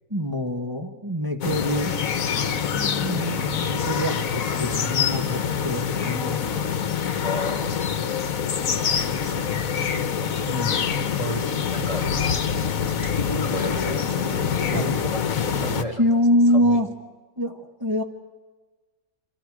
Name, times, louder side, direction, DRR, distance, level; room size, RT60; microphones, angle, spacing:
voice 1, 0.1-1.9 2.7-6.8 10.5-10.8 14.7-14.9 16.0-16.9 17.4-18.0, equal, 15° right, 2 dB, 1.6 m, -25 dB
sound 1, 1.4-15.8, left 7 dB, 70° left, 1.5 m, -25 dB
voice 2, 7.2-8.0 9.0-9.8 11.2-12.4 12.9-16.0 16.5-16.8, left 1 dB, 25° left, 3 dB, 1.6 m, -33 dB
27.5 x 27.0 x 5.0 m, 1.3 s
omnidirectional pair, 1.5 m